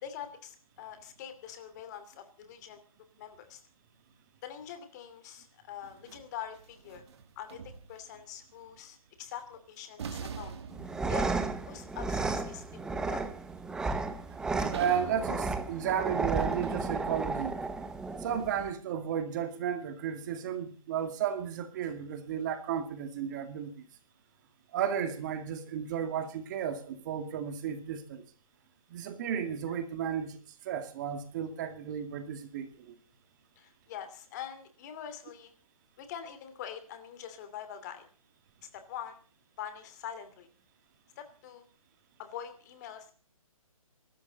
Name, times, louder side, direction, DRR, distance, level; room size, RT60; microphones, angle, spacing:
voice 1, 0.0-2.8 3.2-3.6 4.4-7.0 7.4-10.6 11.1-11.3 11.7-12.6 12.9-13.2 29.7-29.8 33.6-35.5 36.0-38.0 38.7-39.2 39.6-40.5 41.2-41.7 42.2-43.1, left 9 dB, 30° left, 2.7 m, -44 dB
sound 1, 5.8-8.2 9.4-9.5 10.0-17.5, right 7 dB, 50° right, 2.3 m, -45 dB
sound 2, 10.7-18.7, right 3 dB, 5° right, 0.8 m, -33 dB
voice 2, 14.7-15.4 15.7-17.6 18.2-23.7 24.7-28.2 28.9-30.4 30.7-33.0, right 8 dB, 30° right, 2.1 m, -33 dB
23.5 x 13.0 x 4.0 m
hypercardioid pair, 150°, 18 cm